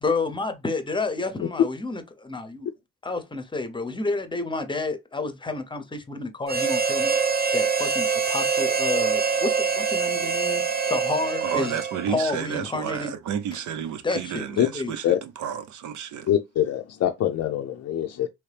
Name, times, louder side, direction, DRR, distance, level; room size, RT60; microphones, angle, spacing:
voice 1, 0.0-2.7 3.0-7.2 7.5-10.6 10.9-11.8 12.1-13.1 14.0-14.5 14.7-14.9, left 3 dB, 15° left, 0.8 m, -30 dB
Harmonica, 6.5-12.3, right 5 dB, 30° right, 0.7 m, -24 dB
voice 2, 11.4-16.3, right 9 dB, 75° right, 0.7 m, -31 dB
voice 3, 16.3-18.3, left 11 dB, 55° left, 0.5 m, -24 dB
3.1 x 2.8 x 3.3 m
cardioid pair, 90°, 30 cm